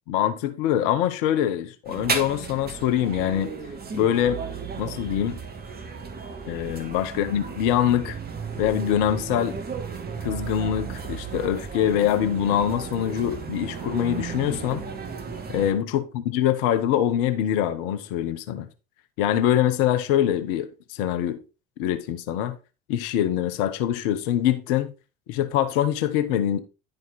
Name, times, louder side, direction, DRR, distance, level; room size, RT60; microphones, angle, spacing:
voice 1, 0.1-3.5 3.9-4.4 4.8-5.4 6.5-8.2 8.6-9.6 10.2-14.8 15.5-18.7 19.2-21.4 21.8-22.5 22.9-24.9 25.3-26.6, left 10 dB, 60° left, 1.1 m, -24 dB
sound 1, 1.9-15.7, right 5 dB, 30° right, 2.0 m, -34 dB
11.0 x 5.2 x 4.1 m
figure-of-eight pair, 65°, 31 cm